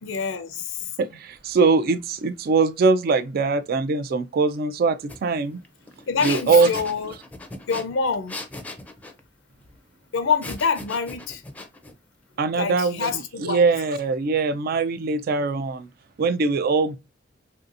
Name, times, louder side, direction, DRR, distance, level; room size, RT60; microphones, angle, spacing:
voice 1, 0.0-0.9 6.1-7.1 7.7-8.4 10.1-11.4 12.6-13.6, left 5 dB, 85° left, 0.5 m, -26 dB
voice 2, 1.0-5.6 6.2-6.7 12.4-13.1 13.4-15.9 16.2-17.0, right 4 dB, 50° right, 0.3 m, -22 dB
sound 1, 5.1-5.2 5.5-9.2 10.4-11.9, left 2 dB, 10° left, 0.5 m, -38 dB
3.2 x 2.7 x 2.5 m
head